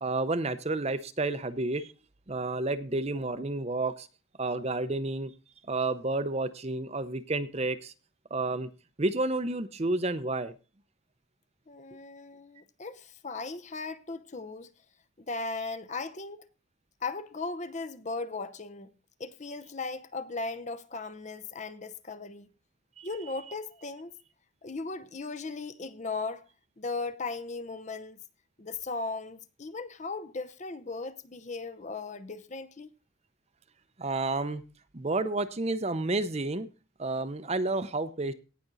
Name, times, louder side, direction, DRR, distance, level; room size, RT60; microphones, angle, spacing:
voice 1, 0.0-1.9 2.3-4.1 4.4-5.3 5.7-7.9 8.3-8.7 9.0-10.5 23.0-23.1 34.0-34.6 34.9-36.7 37.0-38.3, right 2 dB, 30° right, 0.7 m, -30 dB
voice 2, 11.7-14.7 15.2-16.5 17.0-18.9 19.2-22.5 23.0-24.2 24.6-26.5 26.8-28.2 28.6-32.9, left 3 dB, 35° left, 0.7 m, -37 dB
17.5 x 6.1 x 4.0 m
head